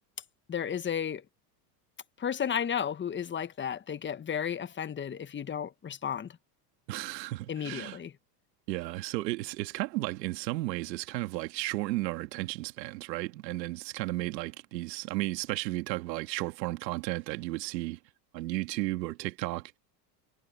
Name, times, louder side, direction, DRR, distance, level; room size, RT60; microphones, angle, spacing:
voice 1, 0.5-1.2 2.2-6.4 7.5-8.1, left 8 dB, 25° left, 1.1 m, -33 dB
voice 2, 6.9-8.0 8.7-18.0 18.3-19.7, right 19 dB, 80° right, 2.0 m, -34 dB
supercardioid pair, 100°, 49 cm